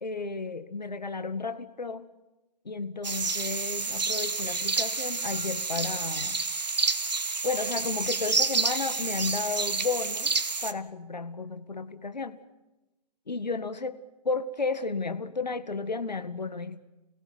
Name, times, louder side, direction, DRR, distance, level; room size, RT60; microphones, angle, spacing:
voice 1, 0.0-2.1 2.7-6.4 7.4-10.3 10.6-12.4 13.3-14.0 14.2-16.8, left 4 dB, 85° left, 12 dB, 2.0 m, -33 dB
sound 1, 3.0-10.7, right 4 dB, 90° right, 1.6 m, -29 dB
28.0 x 17.0 x 9.4 m, 1.1 s
figure-of-eight pair, 130°, 21 cm